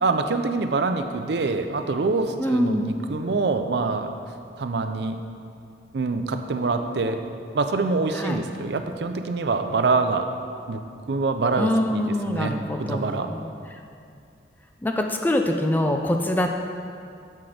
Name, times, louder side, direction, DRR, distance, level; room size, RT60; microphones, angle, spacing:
voice 1, 0.0-4.1 4.6-5.2 5.9-7.2 7.5-10.3 10.7-10.8 11.1-12.6 12.9-13.3, right 3 dB, 70° right, 7 dB, 0.5 m, -25 dB
voice 2, 2.4-2.9 8.1-8.4 11.6-13.5 14.8-16.5, left 1 dB, 10° left, 3 dB, 0.4 m, -24 dB
7.4 x 5.9 x 5.0 m, 2.4 s
head